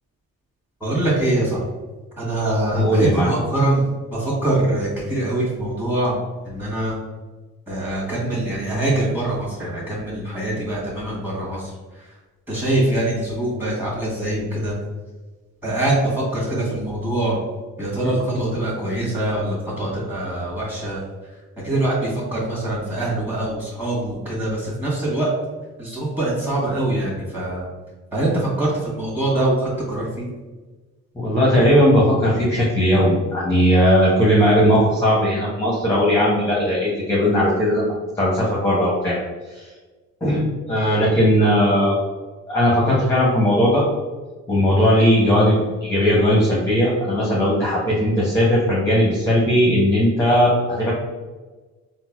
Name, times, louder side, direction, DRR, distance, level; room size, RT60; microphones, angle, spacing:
voice 1, 0.8-1.6 2.2-3.9 4.1-6.2 6.4-7.0 7.7-12.1 12.5-14.7 15.6-17.4 17.8-21.3 21.6-25.3 25.8-27.7 28.1-30.3, right 1 dB, 5° right, -5 dB, 1.5 m, -23 dB
voice 2, 2.7-3.3 31.2-39.2 39.5-39.7 40.2-42.0 42.5-43.8 44.5-50.9, equal, 10° left, -6 dB, 0.8 m, -18 dB
3.9 x 2.1 x 2.4 m, 1.3 s
cardioid pair, 90°, 30 cm